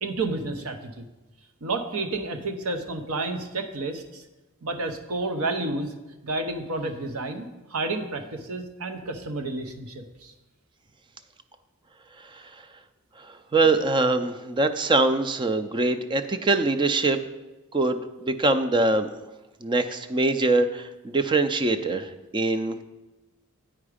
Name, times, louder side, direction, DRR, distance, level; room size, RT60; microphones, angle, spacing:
voice 1, 0.0-1.1 1.6-4.2 4.6-5.9 6.2-10.3, right 2 dB, 85° right, 6 dB, 0.8 m, -30 dB
voice 2, 13.5-17.2 17.7-19.1 19.6-22.8, right 2 dB, 20° right, 10 dB, 0.4 m, -23 dB
8.8 x 4.8 x 4.9 m, 1.1 s
head